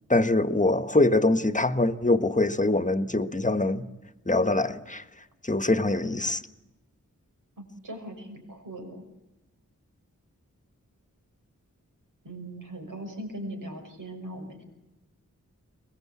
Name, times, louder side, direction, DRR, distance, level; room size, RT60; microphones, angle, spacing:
voice 1, 0.1-3.9 4.3-5.0 5.4-6.4, left 2 dB, 25° left, 1.3 m, -23 dB
voice 2, 7.6-9.0 12.2-14.6, right 1 dB, 80° right, 6.0 m, -39 dB
23.5 x 20.5 x 8.4 m
wide cardioid pair, 60°, 32 cm